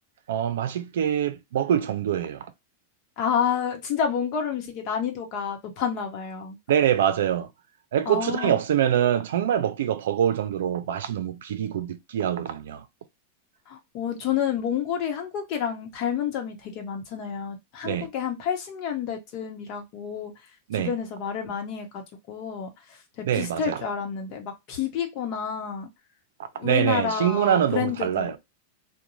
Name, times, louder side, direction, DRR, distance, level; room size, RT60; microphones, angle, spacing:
voice 1, 0.3-2.5 6.7-7.5 7.9-12.8 17.8-18.1 20.7-20.9 23.2-23.8 26.6-28.4, right 10 dB, 80° right, 0.5 m, -24 dB
voice 2, 3.2-6.6 8.0-8.6 13.7-20.3 20.7-22.0 22.3-22.7 23.3-25.9 26.6-28.3, left 8 dB, 40° left, 0.9 m, -29 dB
2.5 x 2.2 x 3.0 m
supercardioid pair, 150°, 0 cm